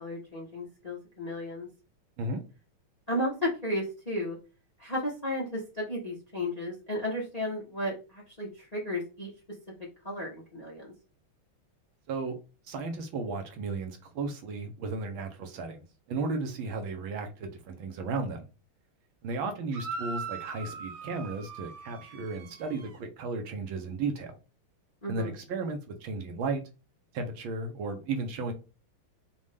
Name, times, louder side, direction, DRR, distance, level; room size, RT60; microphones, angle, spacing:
voice 1, 0.0-1.7 3.1-4.4 4.8-9.3 10.0-10.9 25.0-25.3, left 1 dB, 30° left, 0.7 m, -33 dB
voice 2, 12.7-18.5 19.2-24.4 25.1-26.6 27.1-28.5, right 3 dB, 70° right, 1.6 m, -34 dB
sound 1, 19.7-23.0, right 4 dB, 90° right, 2.1 m, -40 dB
5.3 x 2.5 x 3.3 m
omnidirectional pair, 2.4 m